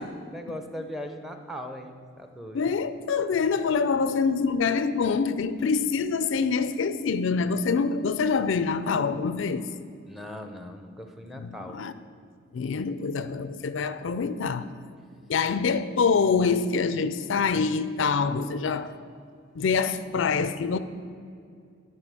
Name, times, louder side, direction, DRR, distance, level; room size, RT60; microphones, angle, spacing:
voice 1, 0.0-2.7 10.0-11.8, equal, ahead, 0.6 m, -39 dB
voice 2, 2.5-9.7 11.4-11.9 12.5-14.7 15.3-18.9 19.6-20.8, left 5 dB, 65° left, 0.4 m, -25 dB
11.5 x 4.4 x 7.5 m
head